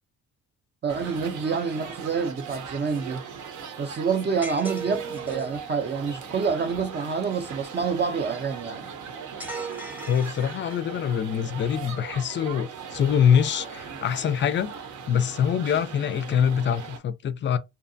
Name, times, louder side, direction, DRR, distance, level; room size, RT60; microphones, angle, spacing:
voice 1, 0.8-3.2 3.8-8.9, right 5 dB, 35° right, 0.5 m, -27 dB
sound 1, 0.9-17.0, right 6 dB, 75° right, 0.7 m, -39 dB
sound 2, 4.4-5.6 9.4-11.0, right 4 dB, 5° right, 0.7 m, -37 dB
voice 2, 10.1-14.7 15.1-17.6, left 8 dB, 40° left, 0.4 m, -24 dB
2.7 x 2.2 x 2.6 m
cardioid pair, 90°, 30 cm